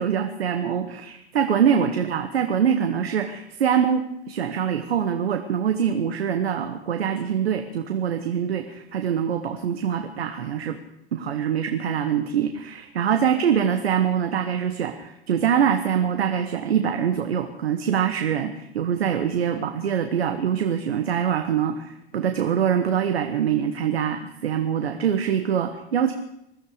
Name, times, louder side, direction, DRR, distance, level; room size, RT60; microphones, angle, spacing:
voice 1, 0.0-10.8 11.1-26.1, right 8 dB, 85° right, 6 dB, 1.3 m, -24 dB
21.0 x 13.5 x 5.0 m, 0.79 s
hypercardioid pair, 90°, 30 cm